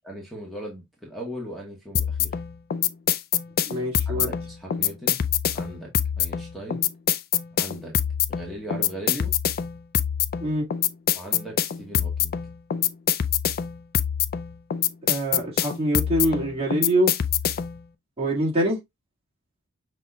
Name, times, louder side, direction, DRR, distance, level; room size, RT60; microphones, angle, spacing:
voice 1, 0.0-2.4 4.1-5.3 5.5-5.9 6.2-6.9 7.5-7.9 8.3-9.3 11.1-12.3, right 1 dB, ahead, 1.4 m, -38 dB
sound 1, 1.9-17.8, left 9 dB, 45° left, 0.4 m, -25 dB
voice 2, 3.7-4.3 10.4-10.6 15.1-17.1 18.2-18.8, equal, 25° right, 1.9 m, -24 dB
6.0 x 3.1 x 2.2 m
head